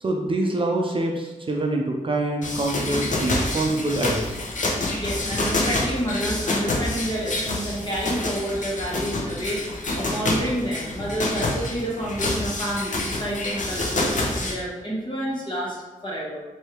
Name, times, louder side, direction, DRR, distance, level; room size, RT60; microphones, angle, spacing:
voice 1, 0.0-4.4, right 2 dB, 40° right, 0 dB, 0.5 m, -25 dB
sound 1, 2.4-14.5, left 2 dB, 65° left, 0.7 m, -27 dB
voice 2, 4.9-15.8 16.0-16.4, right 1 dB, 35° left, -5 dB, 1.4 m, -29 dB
3.2 x 2.7 x 4.5 m, 1.2 s
wide cardioid pair, 100°, 14 cm